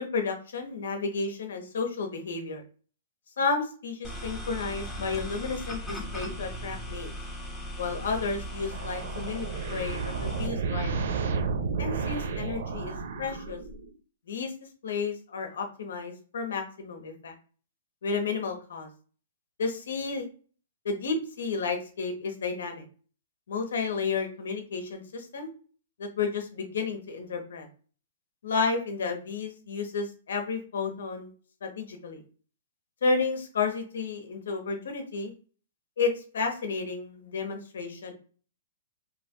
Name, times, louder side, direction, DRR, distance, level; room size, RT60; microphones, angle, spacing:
voice 1, 0.0-2.6 3.4-7.1 7.8-11.1 11.8-13.6 14.3-14.5 14.8-17.3 18.0-18.9 19.6-20.3 20.8-22.8 23.5-25.5 26.0-27.7 28.4-31.3 31.6-32.2 33.0-35.3 36.0-38.1, left 4 dB, 80° left, 5 dB, 0.7 m, -32 dB
sound 1, 4.0-10.5, equal, 5° left, 0.8 m, -38 dB
sound 2, 8.5-14.0, right 5 dB, 70° right, 0.5 m, -32 dB
2.9 x 2.5 x 2.2 m, 0.40 s
hypercardioid pair, 130°, 0 cm